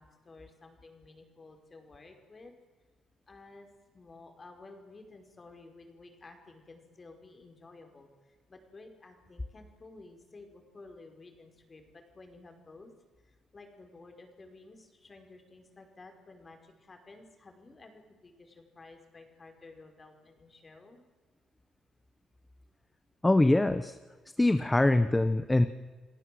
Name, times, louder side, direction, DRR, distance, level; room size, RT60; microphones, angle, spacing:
voice 1, 0.0-2.5 3.3-3.7 3.9-12.9 13.2-21.0, left 3 dB, 30° left, 5 dB, 5.1 m, -53 dB
voice 2, 23.2-24.0 24.4-25.7, left 2 dB, 15° left, 10 dB, 1.1 m, -23 dB
29.5 x 18.0 x 7.8 m, 1.4 s
cardioid pair, 90°, 0 cm